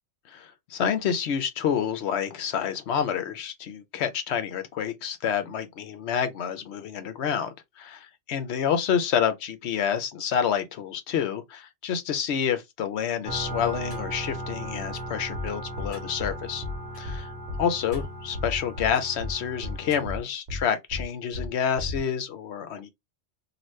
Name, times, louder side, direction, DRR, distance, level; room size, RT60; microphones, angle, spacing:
voice 1, 0.3-16.6 17.0-17.3 17.6-22.9, left 8 dB, 65° left, 0.9 m, -28 dB
sound 1, 13.2-20.2, right 1 dB, 45° left, 1.4 m, -37 dB
sound 2, 15.3-15.5 15.8-15.9 16.2-16.3 16.6-16.8 17.0-17.2 17.5-17.6 17.9-18.0 18.3-18.9 19.2-19.3 19.6-19.8 20.0-20.2 20.5-20.6 20.9-21.0 21.3-21.5 21.8-22.0, left 2 dB, 60° right, 1.0 m, -33 dB
2.9 x 2.4 x 3.1 m
omnidirectional pair, 1.2 m